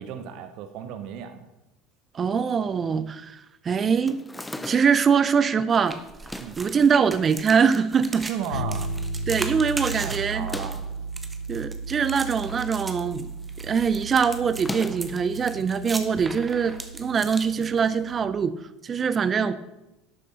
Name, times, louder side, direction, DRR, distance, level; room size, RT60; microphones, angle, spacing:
voice 1, 0.0-1.5 6.4-6.6 8.3-8.9 10.0-10.8, right 9 dB, 60° right, 9 dB, 1.0 m, -35 dB
voice 2, 2.1-3.4 3.6-4.2 4.6-6.0 6.6-8.2 9.3-10.5 11.5-13.3 13.6-18.5 18.8-19.5, right 6 dB, 35° right, 13 dB, 0.8 m, -23 dB
sound 1, 4.1-5.1 6.1-6.7 7.5-8.1 8.5-8.6 8.8-8.9 10.3-11.0 12.0-12.8 13.1-13.4 14.5-15.2, left 1 dB, 10° left, 0.8 m, -38 dB
sound 2, 5.7-18.1, right 3 dB, 20° right, 1.2 m, -39 dB
sound 3, 8.5-18.3, right 2 dB, 90° left, 0.6 m, -35 dB
11.5 x 8.2 x 4.3 m, 0.94 s
hypercardioid pair, 70°, 0 cm